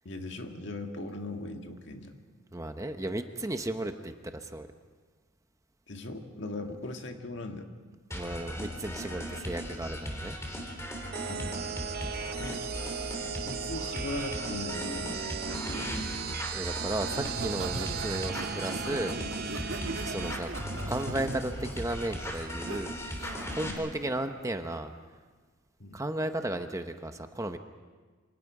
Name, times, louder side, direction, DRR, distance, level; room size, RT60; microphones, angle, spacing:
voice 1, 0.0-2.1 5.9-7.7 11.3-11.6 12.4-12.6 13.4-16.1 19.8-20.0 23.6-23.8 25.8-26.0, left 2 dB, 60° left, 4 dB, 1.8 m, -39 dB
voice 2, 2.5-4.7 8.1-10.4 16.5-19.2 20.0-20.5 20.9-24.9 25.9-27.6, right 1 dB, 15° right, 7 dB, 0.9 m, -34 dB
sound 1, 8.1-23.7, equal, 15° left, 3.5 m, -38 dB
sound 2, 11.1-20.3, right 7 dB, 50° right, 0.7 m, -37 dB
Laughter, 17.1-22.8 23.2-23.5, right 2 dB, 75° right, 1.9 m, -39 dB
27.5 x 26.0 x 4.9 m, 1.4 s
head